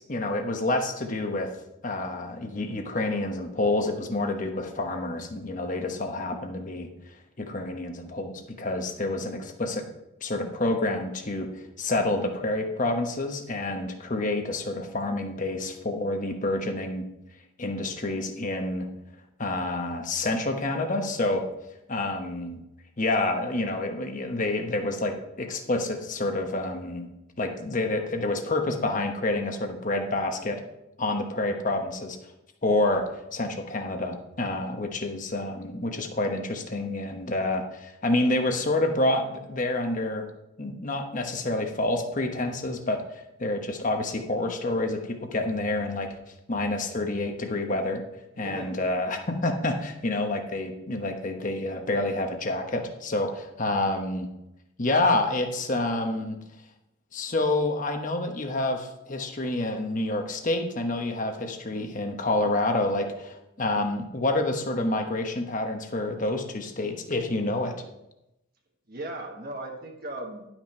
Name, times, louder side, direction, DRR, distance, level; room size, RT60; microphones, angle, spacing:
voice 1, 0.0-1.5 1.8-6.9 7.4-9.8 10.2-11.5 11.8-17.1 17.6-18.9 19.4-21.4 21.9-22.6 23.0-27.1 27.4-30.6 31.0-32.2 32.6-40.3 40.6-43.0 43.4-46.1 46.5-48.0 48.4-54.3 54.8-56.4 57.1-67.8, left 2 dB, 40° left, 4 dB, 1.1 m, -28 dB
voice 2, 48.3-48.8 68.9-70.5, right 1 dB, 50° right, 1 dB, 1.4 m, -37 dB
11.5 x 6.1 x 4.4 m, 0.87 s
head